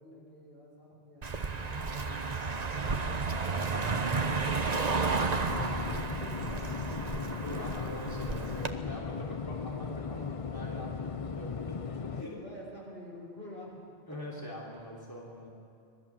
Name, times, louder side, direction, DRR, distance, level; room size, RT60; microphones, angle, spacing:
voice 1, 0.0-3.4 3.7-7.1 7.4-7.9 8.6-9.4 12.0-13.7, left 1 dB, 70° left, -4 dB, 6.6 m, -50 dB
Car passing by, 1.2-8.7, right 4 dB, 40° right, 1.1 m, -32 dB
sound 1, 5.5-12.2, left 5 dB, 40° left, 0.6 m, -37 dB
voice 2, 7.4-11.8 12.1-12.4 14.1-15.5, equal, 20° left, -4 dB, 3.3 m, -43 dB
26.0 x 19.5 x 7.5 m, 2.5 s
omnidirectional pair, 1.0 m